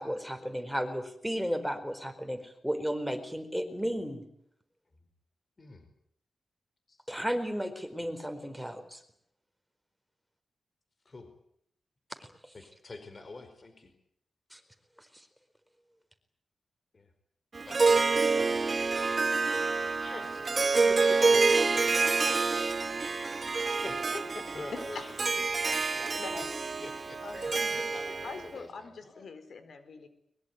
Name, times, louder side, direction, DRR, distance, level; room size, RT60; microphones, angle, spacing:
voice 1, 0.0-4.2 7.1-9.0 12.2-12.3 14.5-14.6, equal, ahead, 7 dB, 4.5 m, -34 dB
voice 2, 12.5-13.9 16.9-17.1 17.6-18.0 18.3-18.7 20.0-20.5 20.8-21.5 23.8-26.4 26.8-29.3, left 3 dB, 40° left, 8 dB, 4.8 m, -45 dB
Harp, 17.6-28.5, right 4 dB, 40° right, 1.3 m, -27 dB
voice 3, 22.0-22.4 23.0-23.1 24.9-25.3 26.2-26.5 27.2-27.7 28.2-30.1, left 4 dB, 70° left, 10 dB, 4.5 m, -43 dB
23.0 x 22.0 x 9.5 m, 0.72 s
wide cardioid pair, 95°, 0 cm